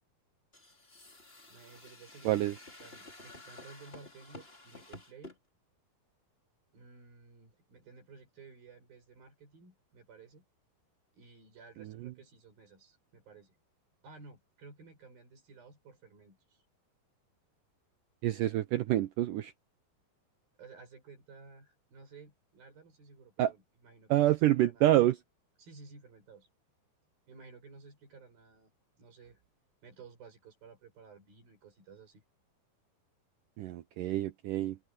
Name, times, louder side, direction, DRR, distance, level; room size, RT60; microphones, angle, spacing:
sound 1, 0.5-5.4, left 2 dB, 15° left, 3.4 m, -52 dB
voice 1, 1.5-5.3 6.7-10.4 11.1-13.6 14.0-16.6 20.6-24.9 25.6-26.5 27.3-28.7 29.0-29.4 29.8-32.2, right 4 dB, 65° right, 8.2 m, -55 dB
voice 2, 2.3-2.6 11.8-12.1 18.2-19.5 23.4-23.5 24.1-25.2 33.6-34.8, right 14 dB, 85° right, 1.9 m, -27 dB
omnidirectional pair, 4.6 m